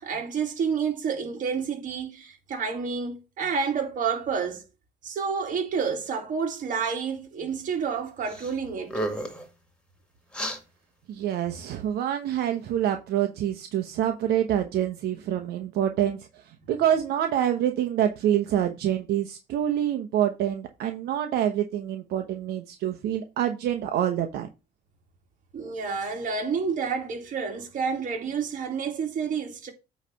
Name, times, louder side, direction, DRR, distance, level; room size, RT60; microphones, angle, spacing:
voice 1, 0.0-4.6 5.0-9.0 25.5-29.7, right 6 dB, 50° right, 2.4 m, -29 dB
sound 1, 8.3-8.5 8.8-9.5 10.3-10.6, right 1 dB, 5° left, 2.0 m, -31 dB
voice 2, 11.1-16.3 16.7-24.5, right 10 dB, 75° right, 1.0 m, -26 dB
8.9 x 3.2 x 5.7 m
cardioid pair, 110°, 17 cm